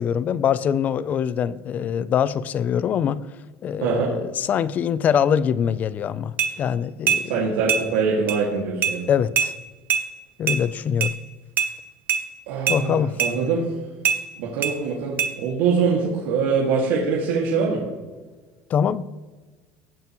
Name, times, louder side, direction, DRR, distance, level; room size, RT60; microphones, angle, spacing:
voice 1, 0.0-3.2 3.6-7.2 9.1-9.5 10.4-11.1 12.7-13.2 18.7-19.0, left 8 dB, 30° left, 17 dB, 0.4 m, -23 dB
voice 2, 3.8-4.1 7.2-9.1 12.5-13.7 14.4-17.8, right 5 dB, 80° right, -3 dB, 2.0 m, -23 dB
sound 1, 6.4-6.5 7.1-7.2 7.7-7.8 8.3-8.4 8.8-9.0 9.4-9.5 9.9-10.0 10.5-10.6 11.0-11.1 11.6-11.7 12.1-12.2 12.7-12.8 13.2-13.3 14.0-14.2 14.6-14.7 15.2-15.3, right 7 dB, 30° right, 1.0 m, -22 dB
16.5 x 9.3 x 3.0 m, 1.3 s
cardioid pair, 170°, 6 cm